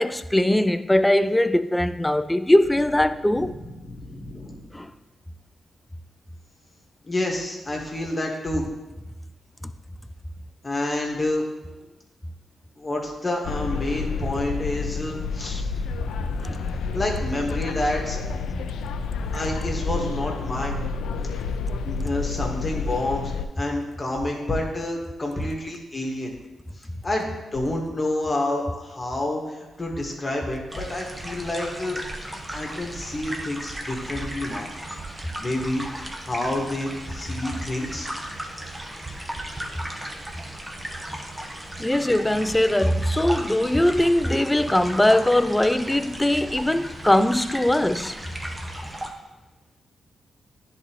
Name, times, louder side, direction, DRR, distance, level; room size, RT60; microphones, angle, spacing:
voice 1, 0.0-3.5 4.7-4.9 15.5-15.6 16.4-16.6 41.8-48.2, left 1 dB, 10° left, 0.4 m, -21 dB
voice 2, 3.4-4.6 7.0-8.6 10.6-11.4 12.8-15.6 16.9-18.2 19.3-20.8 21.8-23.3 23.6-26.3 27.0-32.0 32.5-34.7 35.4-38.1, left 1 dB, 30° left, 1.7 m, -28 dB
sound 1, 13.4-23.5, left 4 dB, 80° left, 0.3 m, -29 dB
sound 2, 30.7-49.1, right 1 dB, 15° right, 1.1 m, -36 dB
10.5 x 4.1 x 3.0 m
supercardioid pair, 55°, 0 cm